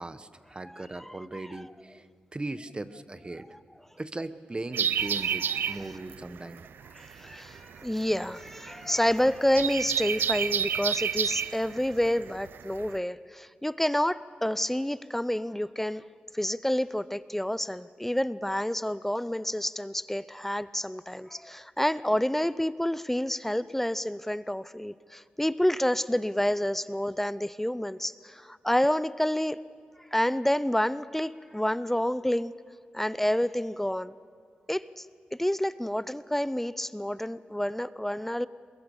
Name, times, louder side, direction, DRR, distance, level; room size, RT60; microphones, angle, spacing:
voice 1, 0.0-2.0 2.3-3.5 4.0-6.6 7.5-7.6, right 2 dB, 30° right, 13 dB, 1.1 m, -38 dB
voice 2, 0.6-1.6 5.7-5.8 6.4-6.5 6.9-16.0 16.3-29.6 30.1-32.5 32.9-34.1 34.7-35.1 35.3-38.5, equal, 5° left, 16 dB, 0.6 m, -29 dB
sound 1, 4.7-13.0, right 8 dB, 75° right, 0.5 m, -30 dB
22.5 x 21.5 x 7.0 m, 2.1 s
cardioid pair, 50°, 4 cm